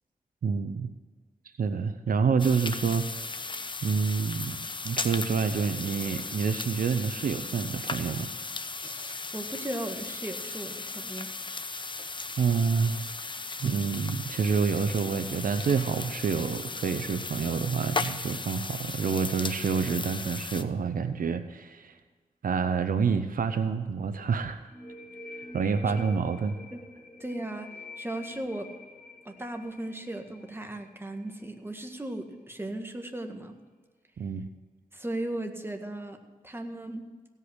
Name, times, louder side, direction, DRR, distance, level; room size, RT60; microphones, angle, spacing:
voice 1, 0.4-0.9 1.4-3.1 3.8-8.3 12.4-13.0 13.6-22.0 22.4-24.6 25.5-26.5 34.2-34.4, right 5 dB, 75° right, 9 dB, 0.8 m, -28 dB
sound 1, 2.4-20.6, left 3 dB, 35° left, 0.8 m, -36 dB
voice 2, 8.8-11.3 26.7-26.8 27.2-28.7 29.2-33.5 34.9-37.0, right 1 dB, 15° right, 5 dB, 1.8 m, -37 dB
sound 2, 24.7-32.1, left 2 dB, 5° left, 4.2 m, -47 dB
16.5 x 5.6 x 8.0 m, 1.5 s
cardioid pair, 55°, 15 cm